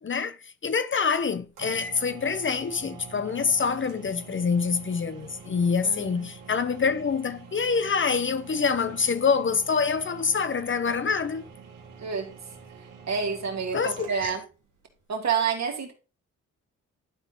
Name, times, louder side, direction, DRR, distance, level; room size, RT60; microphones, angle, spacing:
voice 1, 0.0-11.5 13.7-14.4, left 5 dB, 40° left, 0.9 m, -26 dB
sound 1, 1.2-1.3 1.6-14.4, right 4 dB, 85° right, 2.2 m, -45 dB
voice 2, 13.1-14.4 15.1-15.9, right 6 dB, 60° right, 2.6 m, -28 dB
11.5 x 4.1 x 4.0 m
cardioid pair, 65°, 31 cm